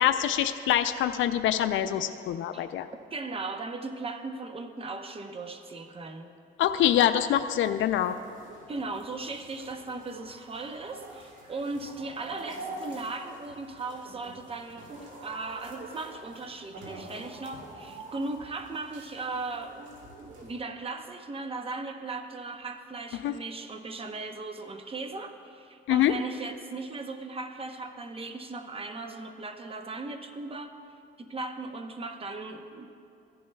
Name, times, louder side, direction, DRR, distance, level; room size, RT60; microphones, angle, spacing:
voice 1, 0.0-2.9 6.6-8.2 23.2-23.3 25.9-26.1, left 11 dB, 75° left, 10 dB, 0.4 m, -25 dB
voice 2, 3.1-6.3 8.7-14.9 15.2-19.9 20.2-30.8 31.2-32.9, right 3 dB, 30° right, 6 dB, 0.8 m, -37 dB
sound 1, 7.3-20.6, right 2 dB, 70° right, 2.4 m, -46 dB
15.5 x 11.0 x 2.2 m, 2.5 s
cardioid pair, 90°, 20 cm